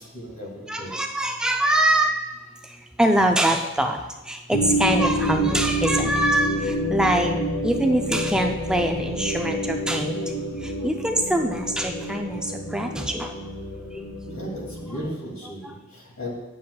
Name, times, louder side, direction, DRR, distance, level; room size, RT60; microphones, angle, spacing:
voice 1, 0.0-0.9 14.3-16.3, equal, 90° left, -2 dB, 2.3 m, -36 dB
voice 2, 0.7-2.2 2.6-7.4 7.6-13.3 13.9-14.1 15.6-15.7, right 1 dB, 5° right, 3 dB, 0.4 m, -24 dB
sound 1, 4.5-15.1, equal, 75° left, 0.7 m, -28 dB
10.0 x 7.5 x 2.3 m, 1.1 s
head